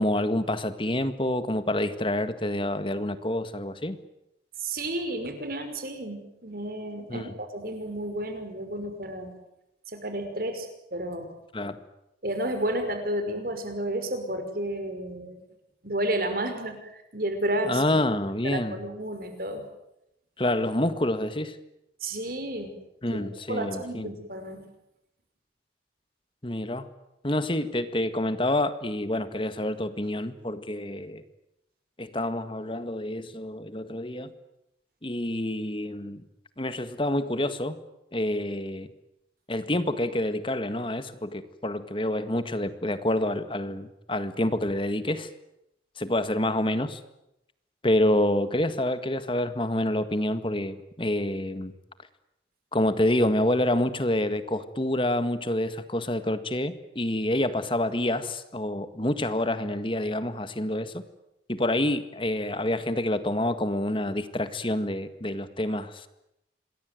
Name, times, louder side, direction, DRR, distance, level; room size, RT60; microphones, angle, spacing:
voice 1, 0.0-4.0 7.1-7.3 11.5-11.8 17.6-18.8 20.4-21.6 23.0-24.1 26.4-26.9 27.2-31.2 32.0-34.3 35.0-36.2 36.6-37.8 38.1-38.9 39.5-45.3 46.0-47.0 47.8-51.7 52.7-61.0 61.5-66.1, left 1 dB, 30° left, 11 dB, 1.8 m, -27 dB
voice 2, 4.6-9.3 9.9-11.3 12.2-15.4 15.8-17.8 18.4-19.6 22.0-22.7 23.1-24.6, right 1 dB, 50° right, 7 dB, 5.7 m, -32 dB
27.5 x 21.0 x 9.4 m, 0.85 s
head